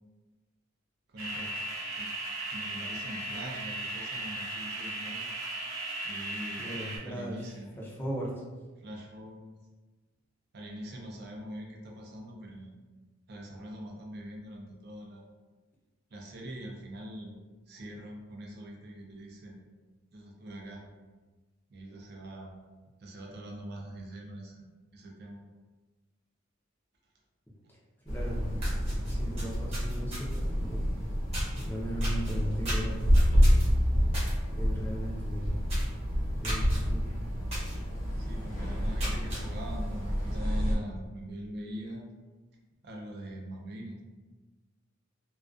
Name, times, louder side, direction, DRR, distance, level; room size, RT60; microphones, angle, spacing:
voice 1, 1.1-1.5 1.9-2.1 2.5-5.3 6.0-6.7 7.0-7.7 8.8-9.5 10.5-12.7 13.3-15.2 16.1-17.4 17.7-19.6 20.1-20.8 21.7-22.5 23.0-24.7 24.9-25.4 38.2-42.1 42.8-44.0, right 1 dB, 50° right, 0 dB, 0.4 m, -43 dB
sound 1, 1.2-7.0, right 2 dB, 80° right, 0.7 m, -37 dB
voice 2, 6.6-8.3 27.7-27.8 28.0-28.5 29.1-30.9 31.5-33.6 34.6-35.7 36.3-37.1, equal, 10° left, -5 dB, 0.4 m, -38 dB
sound 2, 28.1-40.7, equal, 75° left, 0.7 m, -28 dB
sound 3, 28.1-28.2 28.5-30.5 31.3-31.6 32.0-34.3 34.7-34.9 35.2-35.3 35.6-36.0 36.4-36.8 37.5-37.8 38.2-38.3 38.8-39.4, equal, 30° right, 0.9 m, -36 dB
2.3 x 2.3 x 2.4 m, 1.2 s
head